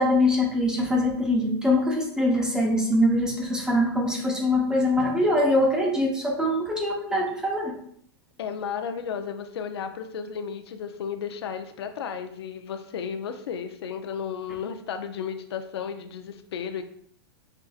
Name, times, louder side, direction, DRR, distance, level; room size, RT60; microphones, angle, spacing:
voice 1, 0.0-7.8, left 1 dB, 5° right, 0 dB, 0.6 m, -23 dB
voice 2, 8.4-16.8, left 7 dB, 85° left, 7 dB, 0.5 m, -33 dB
5.4 x 2.5 x 2.3 m, 0.66 s
hypercardioid pair, 145°, 13 cm